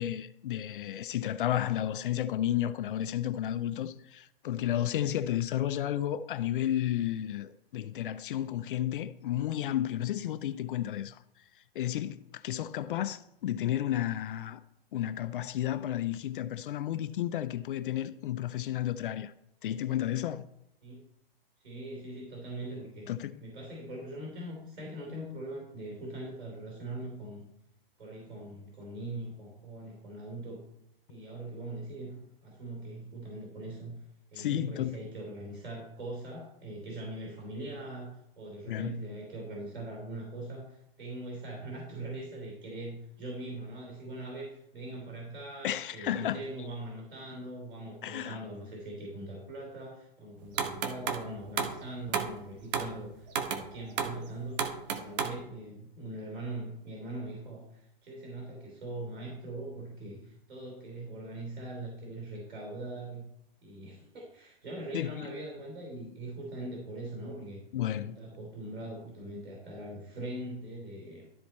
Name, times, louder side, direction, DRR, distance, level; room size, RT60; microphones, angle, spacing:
voice 1, 0.0-11.2 11.8-14.6 14.9-19.3 19.6-20.5 23.1-23.4 34.4-35.0 38.7-39.0 45.6-46.4 48.0-48.4 64.9-65.3 67.7-68.2, left 12 dB, 60° left, 0.5 m, -32 dB
voice 2, 21.6-23.1 23.4-27.5 28.0-30.6 31.1-34.0 34.3-63.3 63.6-67.6 67.9-71.3, right 1 dB, 85° right, 3.3 m, -41 dB
sound 1, 50.6-51.3 51.6-51.8 52.1-52.4 52.7-52.9 53.3-53.7 54.0-54.2 54.6-55.4, right 7 dB, 45° right, 1.1 m, -32 dB
12.5 x 4.3 x 4.2 m
hypercardioid pair, 145°, 30 cm